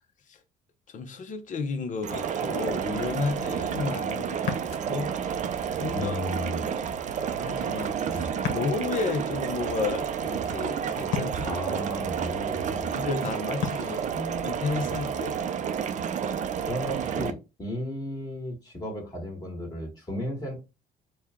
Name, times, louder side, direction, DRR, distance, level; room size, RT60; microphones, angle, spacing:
voice 1, 0.9-4.5 4.9-5.1 5.8-6.2 6.6-6.8 7.3-11.6 12.9-14.0 14.4-15.4, left 4 dB, 50° left, 0.9 m, -32 dB
sound 1, 2.0-17.3, right 8 dB, 45° right, 0.5 m, -30 dB
Ocean, 4.4-15.5, left 6 dB, 80° left, 1.0 m, -40 dB
voice 2, 5.9-6.6 8.1-8.4 11.4-13.3 13.7-14.5 16.6-20.6, left 1 dB, 20° left, 1.6 m, -35 dB
4.4 x 2.3 x 3.6 m
cardioid pair, 110°, 17 cm